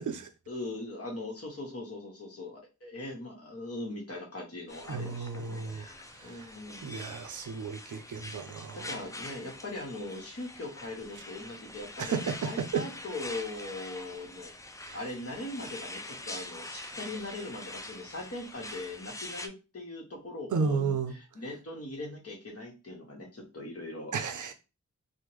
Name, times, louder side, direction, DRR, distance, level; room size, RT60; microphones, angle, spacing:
voice 1, 0.5-6.9 8.7-14.5 14.9-24.1, left 2 dB, 50° left, 1.1 m, -40 dB
sound 1, 4.7-19.5, left 2 dB, 10° left, 0.3 m, -44 dB
voice 2, 4.9-5.8 6.2-6.5 6.8-8.9 12.0-12.8 14.9-15.0 20.5-21.1 24.1-24.5, right 5 dB, 80° right, 0.5 m, -33 dB
3.5 x 2.1 x 3.1 m
wide cardioid pair, 85°, 30 cm